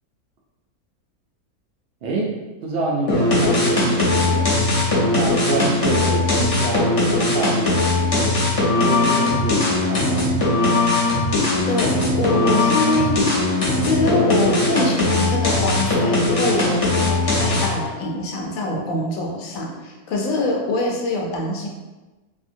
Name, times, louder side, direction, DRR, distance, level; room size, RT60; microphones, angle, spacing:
voice 1, 2.6-4.5 4.9-8.4 8.7-10.4, right 2 dB, 75° right, -3 dB, 0.5 m, -27 dB
sound 1, 3.1-17.9, left 2 dB, 40° left, 0.5 m, -19 dB
voice 2, 11.7-13.3 13.8-21.7, left 2 dB, 70° left, 0 dB, 0.9 m, -24 dB
2.7 x 2.6 x 2.5 m, 1.2 s
omnidirectional pair, 1.6 m